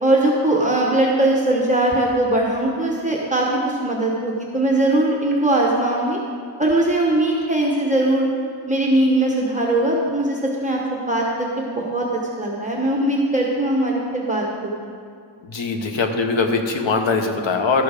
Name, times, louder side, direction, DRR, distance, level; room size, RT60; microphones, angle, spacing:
voice 1, 0.0-6.2 6.6-8.3 8.7-14.4, right 1 dB, 15° right, -2 dB, 0.9 m, -20 dB
voice 2, 15.4-17.8, left 4 dB, 85° left, 4 dB, 1.1 m, -21 dB
12.0 x 6.9 x 4.9 m, 2.3 s
wide cardioid pair, 165°, 44 cm